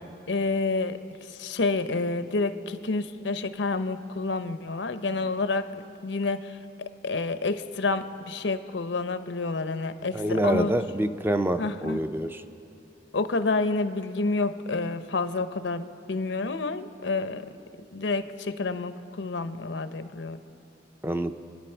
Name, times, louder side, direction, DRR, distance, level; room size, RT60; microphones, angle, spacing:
voice 1, 0.3-1.0 1.4-5.7 6.0-6.5 7.0-10.7 11.6-12.0 13.1-17.5 17.9-20.4, left 3 dB, 85° left, 10 dB, 0.8 m, -29 dB
voice 2, 10.1-12.4 21.0-21.3, right 1 dB, 10° right, 9 dB, 0.5 m, -26 dB
28.5 x 10.0 x 4.5 m, 2.7 s
head